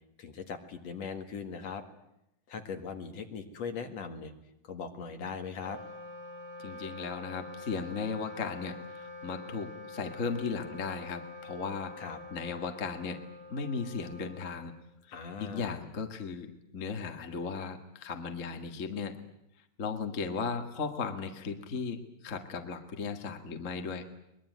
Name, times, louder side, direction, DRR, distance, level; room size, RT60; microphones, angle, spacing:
voice 1, 0.2-1.8 2.5-4.3 4.6-5.8 12.0-12.2 15.1-15.7, left 5 dB, 55° left, 6 dB, 2.8 m, -39 dB
Wind instrument woodwind instrument, 5.5-15.1, left 2 dB, 20° right, 3.8 m, -46 dB
voice 2, 6.6-11.9 12.3-13.2 13.5-14.7 15.4-19.2 19.8-24.0, left 5 dB, 30° left, 6 dB, 1.5 m, -36 dB
23.0 x 21.5 x 9.4 m, 0.82 s
omnidirectional pair, 3.9 m